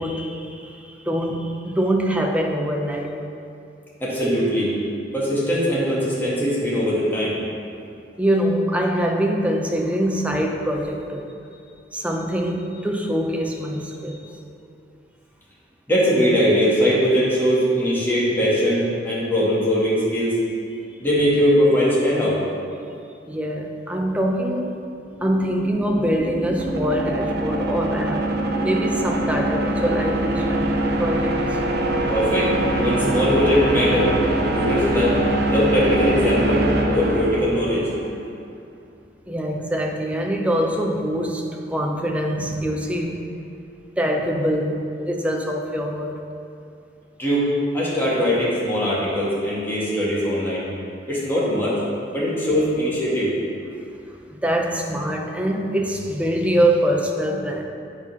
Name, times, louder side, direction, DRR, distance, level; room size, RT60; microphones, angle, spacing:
voice 1, 0.0-3.2 8.2-11.3 11.9-14.3 23.3-24.8 25.2-31.6 39.3-43.2 44.0-46.2 54.3-57.6, equal, 5° right, 1 dB, 0.7 m, -24 dB
voice 2, 4.0-4.7 5.1-7.4 15.9-20.3 21.0-22.4 32.1-32.5 32.8-34.1 34.4-35.2 35.5-37.9 47.2-50.6 51.1-51.8 52.1-53.3, equal, 10° left, -8 dB, 2.1 m, -20 dB
sound 1, 25.0-38.1, right 1 dB, 60° right, 0.7 m, -23 dB
8.7 x 4.3 x 5.6 m, 2.5 s
head